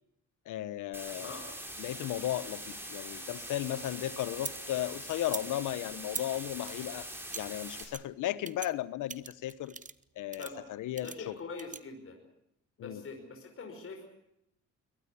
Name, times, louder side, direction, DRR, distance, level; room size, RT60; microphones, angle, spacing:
voice 1, 0.5-1.4 1.8-7.1 7.3-9.7 10.2-11.4 12.8-13.0, left 13 dB, 85° left, 16 dB, 1.1 m, -35 dB
sound 1, 0.9-7.8, right 1 dB, 5° right, 6.4 m, -43 dB
voice 2, 1.1-1.4 10.4-10.6 11.0-12.2 12.8-14.1, left 4 dB, 45° left, 3 dB, 5.3 m, -43 dB
sound 2, 3.3-4.6 5.2-5.4 6.0-6.3 6.6-7.4 7.8-8.0 8.4-8.7 9.1-10.0 10.3-10.5 11.0-11.8, right 5 dB, 25° right, 0.9 m, -42 dB
23.5 x 18.5 x 8.4 m, 0.80 s
cardioid pair, 90°, 30 cm